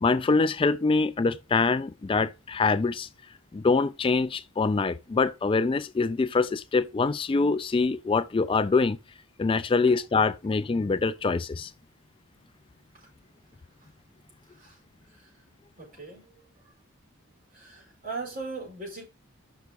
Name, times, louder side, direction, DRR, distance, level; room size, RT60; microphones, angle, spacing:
voice 1, 0.0-3.1 3.5-9.0 9.4-11.7, left 4 dB, 25° left, 0.3 m, -24 dB
voice 2, 14.5-14.8 15.1-15.3 15.8-16.7 17.5-19.1, right 3 dB, 40° right, 5.1 m, -40 dB
6.0 x 5.9 x 5.1 m
head